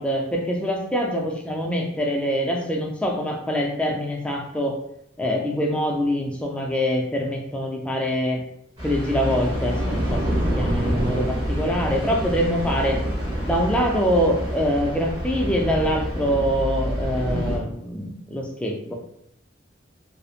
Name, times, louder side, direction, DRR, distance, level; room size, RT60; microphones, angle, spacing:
voice 1, 0.0-4.8 5.2-8.4 8.8-13.0 13.4-18.9, equal, 5° left, 0 dB, 0.4 m, -24 dB
sound 1, 8.8-17.6, equal, 25° right, 0.9 m, -27 dB
2.9 x 2.1 x 2.3 m, 0.73 s
head